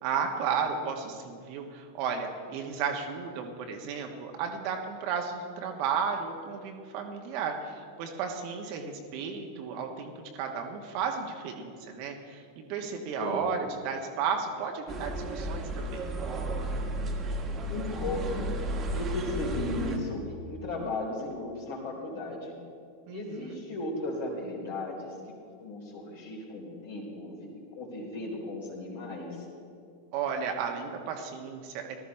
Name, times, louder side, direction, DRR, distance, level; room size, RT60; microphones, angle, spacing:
voice 1, 0.0-16.0 23.1-23.6 30.1-32.0, right 6 dB, 45° right, 3 dB, 1.2 m, -33 dB
sound 1, 14.9-20.0, right 1 dB, 25° right, 1.5 m, -33 dB
voice 2, 17.7-18.5 18.9-22.5 23.1-25.1 25.6-29.4, left 2 dB, 60° left, -4 dB, 3.7 m, -36 dB
19.0 x 12.5 x 3.2 m, 2.3 s
figure-of-eight pair, 90°, 0 cm